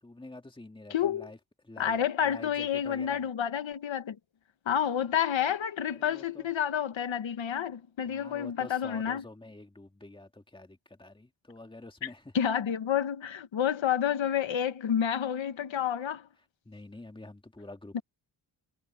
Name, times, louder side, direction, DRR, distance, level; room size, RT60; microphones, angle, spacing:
voice 1, 0.0-3.3 5.9-6.5 8.0-12.3 16.6-18.0, left 2 dB, 10° left, 2.4 m, -47 dB
voice 2, 0.9-1.3 1.8-4.2 4.7-9.2 12.3-16.3 17.9-18.0, left 9 dB, 75° left, 1.3 m, -29 dB
wide cardioid pair, 175°, 46 cm